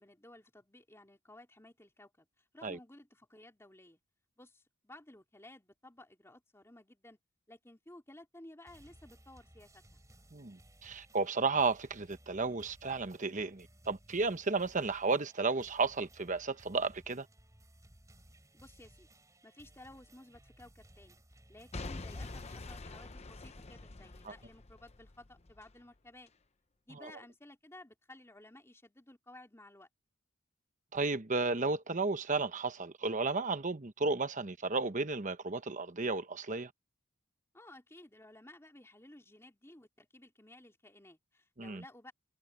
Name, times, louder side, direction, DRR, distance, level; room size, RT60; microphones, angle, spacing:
voice 1, 0.0-4.0 4.4-7.2 7.5-10.0 18.5-19.1 19.4-21.2 21.5-26.3 26.8-29.9 37.5-42.1, left 1 dB, 10° left, 2.9 m, -56 dB
sound 1, 8.7-22.6, right 1 dB, 15° right, 3.8 m, -60 dB
voice 2, 10.3-17.3 30.9-36.7 41.6-41.8, right 3 dB, 35° right, 1.0 m, -33 dB
Boom / Shatter / Crushing, 21.7-25.7 26.3-26.4, left 2 dB, 30° left, 0.7 m, -45 dB
head